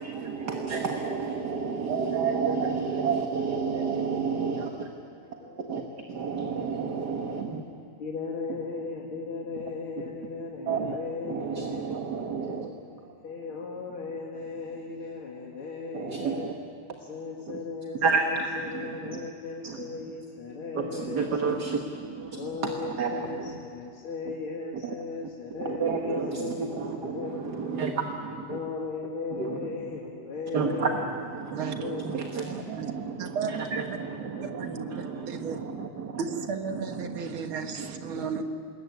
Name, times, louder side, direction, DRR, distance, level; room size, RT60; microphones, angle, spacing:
voice 1, 0.0-4.9 5.5-7.7 9.6-9.7 10.7-11.0 11.2-12.7 15.9-16.6 17.5-17.6 17.9-19.3 19.6-20.1 20.7-23.6 24.3-24.4 24.7-24.9 25.6-28.6 29.3-30.0 30.5-36.4 36.7-37.4 37.8-38.2, right 5 dB, 55° right, 3 dB, 2.0 m, -31 dB
voice 2, 5.2-6.5 8.0-11.8 12.8-16.5 17.1-21.7 22.3-27.8 28.5-31.1 31.7-32.0 36.0-36.2, left 4 dB, 85° left, -2 dB, 3.0 m, -37 dB
voice 3, 31.5-31.9 32.8-32.9 33.2-34.0 34.4-35.6 36.2-38.4, right 5 dB, 75° right, 6 dB, 2.3 m, -34 dB
26.5 x 21.5 x 9.5 m, 2.5 s
omnidirectional pair, 2.3 m